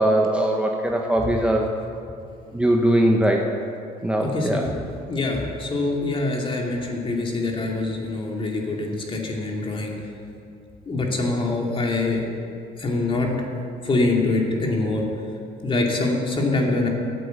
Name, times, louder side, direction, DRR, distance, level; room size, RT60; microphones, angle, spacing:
voice 1, 0.0-1.7 2.5-3.5 4.0-4.6, right 1 dB, 5° right, 0 dB, 1.0 m, -20 dB
voice 2, 4.2-4.7 5.1-9.9 10.9-12.2 12.8-13.3 13.8-15.0 15.6-16.9, left 2 dB, 30° left, 0 dB, 2.6 m, -24 dB
14.0 x 8.2 x 8.1 m, 2.5 s
cardioid pair, 110°, 17 cm